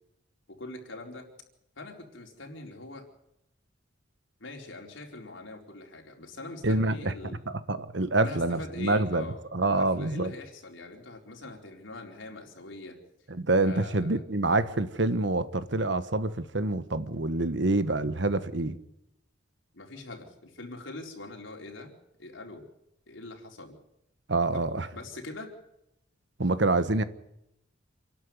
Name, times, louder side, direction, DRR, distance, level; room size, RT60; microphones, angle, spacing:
voice 1, 0.5-1.3 1.8-3.1 4.4-7.4 8.2-13.0 13.6-14.2 19.7-21.9 22.2-22.7 23.1-23.8 24.5-24.6 24.9-25.5, left 2 dB, 80° left, 4.4 m, -43 dB
voice 2, 6.6-7.1 7.5-10.3 13.3-18.8 24.3-24.9 26.4-27.0, right 2 dB, 65° right, 1.3 m, -26 dB
27.5 x 12.0 x 9.6 m
head